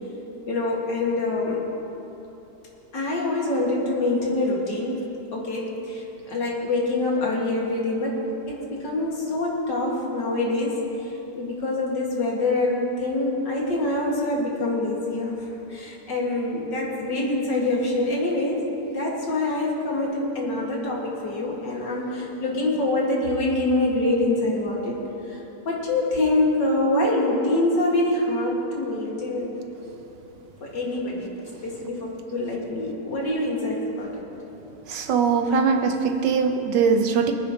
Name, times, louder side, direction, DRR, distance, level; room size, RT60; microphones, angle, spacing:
voice 1, 0.5-1.6 2.9-5.0 5.3-10.8 11.4-15.4 15.7-25.0 25.3-25.4 25.7-29.5 30.6-31.3 31.6-34.3, left 2 dB, 90° left, -3 dB, 2.6 m, -25 dB
voice 2, 34.9-37.3, right 5 dB, 85° right, 6 dB, 1.5 m, -21 dB
23.5 x 9.4 x 3.0 m, 3.0 s
omnidirectional pair, 1.8 m